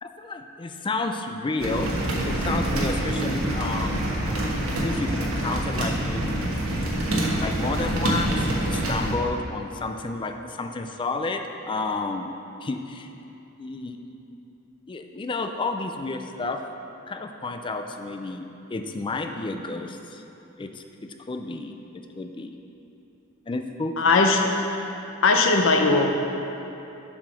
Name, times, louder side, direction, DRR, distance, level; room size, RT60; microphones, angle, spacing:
voice 1, 0.0-1.9 2.3-4.1 4.8-6.4 7.4-12.3 12.6-13.1 13.6-14.2 14.9-16.6 17.1-20.2 20.6-21.8 22.2-22.6 23.5-24.1, left 3 dB, 25° left, 6 dB, 0.4 m, -31 dB
sound 1, 1.6-9.2, right 1 dB, 85° right, 1.2 m, -26 dB
voice 2, 24.0-24.4 25.2-26.1, left 3 dB, 65° left, 3 dB, 0.7 m, -18 dB
7.3 x 4.9 x 5.6 m, 2.9 s
head